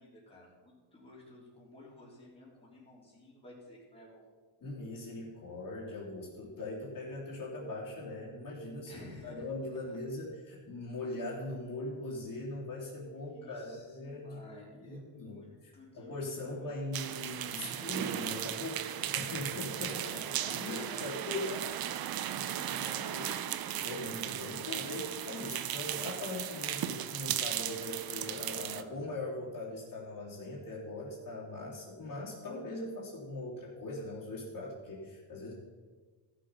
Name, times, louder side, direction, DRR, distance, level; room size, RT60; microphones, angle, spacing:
voice 1, 0.0-4.2 8.9-9.5 9.8-10.0 13.3-15.5 15.7-16.8 19.8-21.2 21.4-23.6, left 1 dB, 10° left, -6 dB, 3.4 m, -52 dB
voice 2, 4.6-14.4 14.8-20.2 20.5-21.5 22.3-22.8 23.1-23.3 23.8-35.5, left 2 dB, 45° left, -6 dB, 3.3 m, -41 dB
sound 1, 16.9-28.8, right 11 dB, 50° right, 0.7 m, -36 dB
14.5 x 6.7 x 5.6 m, 1.4 s
cardioid pair, 125°, 47 cm